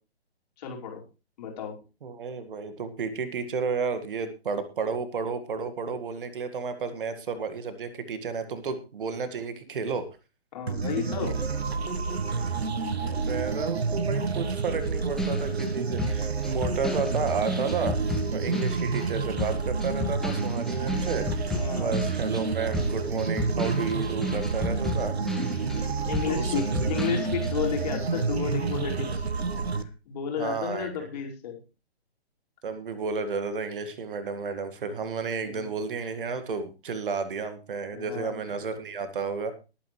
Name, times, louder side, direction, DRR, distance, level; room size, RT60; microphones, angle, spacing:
voice 1, 0.6-1.0 1.4-1.7 10.5-11.4 21.5-22.1 25.4-29.2 29.7-31.6 35.4-35.7 37.9-38.4, left 7 dB, 40° left, 0 dB, 5.2 m, -33 dB
voice 2, 2.0-10.1 12.3-12.6 13.0-25.5 26.3-26.9 30.4-31.1 32.6-39.5, right 5 dB, 55° right, 10 dB, 2.0 m, -32 dB
sound 1, 10.7-29.8, right 4 dB, 70° right, 1.5 m, -29 dB
sound 2, 14.8-19.1 19.4-25.9 26.1-27.6, left 2 dB, ahead, 1.6 m, -33 dB
19.5 x 9.3 x 3.3 m, 0.31 s
figure-of-eight pair, 135°, 32 cm